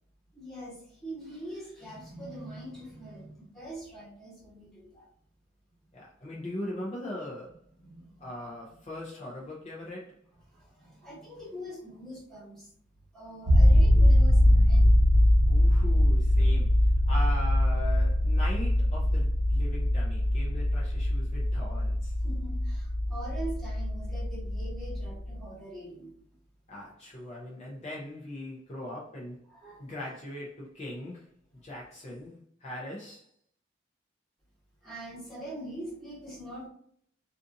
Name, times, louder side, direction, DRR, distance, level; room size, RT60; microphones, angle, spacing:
voice 1, 0.3-5.1 7.8-8.3 10.5-12.7 13.1-14.9 22.2-26.1 29.5-29.9 34.8-36.7, right 1 dB, ahead, 1.1 m, -43 dB
voice 2, 5.9-7.6 8.2-10.2 15.5-22.1 26.7-29.4 29.8-31.3 31.6-33.3, left 1 dB, 30° left, 0.5 m, -40 dB
sound 1, 13.5-25.4, left 1 dB, 60° right, 0.8 m, -23 dB
2.5 x 2.5 x 2.5 m
head